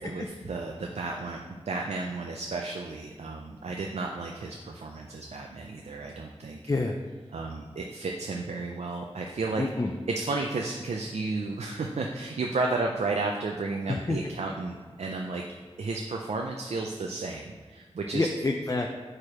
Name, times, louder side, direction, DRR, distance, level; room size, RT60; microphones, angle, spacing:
voice 1, 0.0-1.4 1.7-6.6 7.3-9.6 10.1-15.4 15.8-18.3, right 3 dB, 85° right, 1 dB, 0.4 m, -33 dB
voice 2, 6.7-7.0 9.6-9.9 13.9-14.2 18.1-18.9, left 2 dB, 30° left, 2 dB, 0.4 m, -28 dB
4.8 x 4.3 x 4.8 m, 1.5 s
wide cardioid pair, 60°, 11 cm